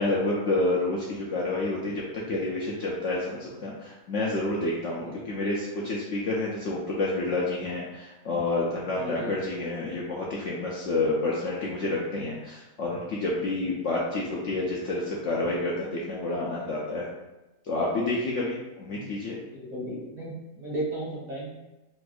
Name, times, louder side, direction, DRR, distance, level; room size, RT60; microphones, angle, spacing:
voice 1, 0.0-17.1 17.7-19.4, left 2 dB, 70° left, -4 dB, 0.7 m, -29 dB
voice 2, 9.0-9.3 18.9-19.1 19.5-21.5, right 1 dB, 35° right, -8 dB, 0.8 m, -35 dB
4.2 x 2.4 x 2.3 m, 1.0 s
omnidirectional pair, 1.6 m